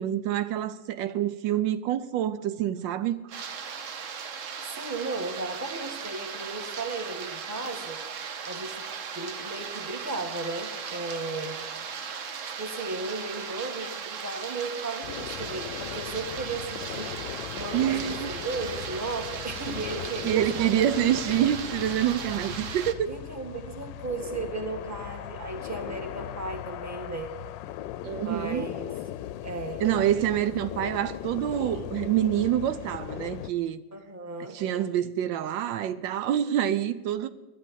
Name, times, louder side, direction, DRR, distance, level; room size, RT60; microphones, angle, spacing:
voice 1, 0.0-3.2 17.7-18.3 20.2-23.1 28.0-28.7 29.8-33.8 34.5-37.3, right 11 dB, 80° right, 1.3 m, -27 dB
sound 1, 3.3-22.9, right 6 dB, 55° right, 1.0 m, -37 dB
voice 2, 4.6-8.0 8.5-8.9 9.1-11.6 12.4-21.2 23.1-27.3 28.2-28.9 29.4-29.8 33.9-34.6, right 3 dB, 10° right, 1.3 m, -35 dB
sound 2, 15.0-33.5, left 12 dB, 80° left, 1.2 m, -38 dB
11.0 x 9.1 x 8.3 m
omnidirectional pair, 2.0 m